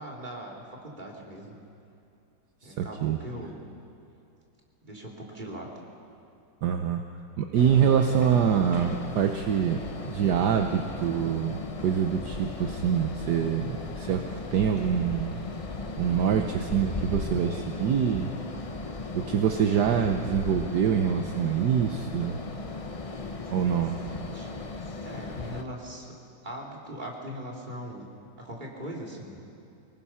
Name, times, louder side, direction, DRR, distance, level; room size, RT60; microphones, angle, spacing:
voice 1, 0.0-1.5 2.6-3.5 4.8-5.7 24.3-24.5 25.0-26.1 26.4-28.1 28.4-29.4, right 1 dB, 25° right, -2 dB, 2.9 m, -40 dB
voice 2, 2.6-3.2 6.6-7.0 7.4-9.8 10.1-15.4 16.0-18.3 19.1-22.4 23.5-24.0, right 8 dB, 65° right, 5 dB, 1.4 m, -25 dB
sound 1, 7.5-25.6, left 3 dB, 35° left, 0.5 m, -37 dB
25.0 x 19.0 x 5.7 m, 2.6 s
omnidirectional pair, 2.0 m